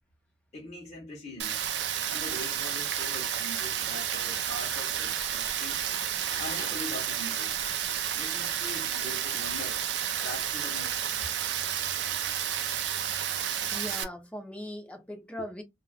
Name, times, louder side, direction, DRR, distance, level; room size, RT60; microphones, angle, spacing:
voice 1, 0.5-1.6 2.1-7.5 8.1-11.0, left 1 dB, 40° left, 0.8 m, -42 dB
Rain, 1.4-14.0, right 9 dB, 65° right, 0.5 m, -31 dB
voice 2, 13.7-15.6, left 1 dB, 5° left, 0.6 m, -39 dB
2.4 x 2.2 x 3.3 m
head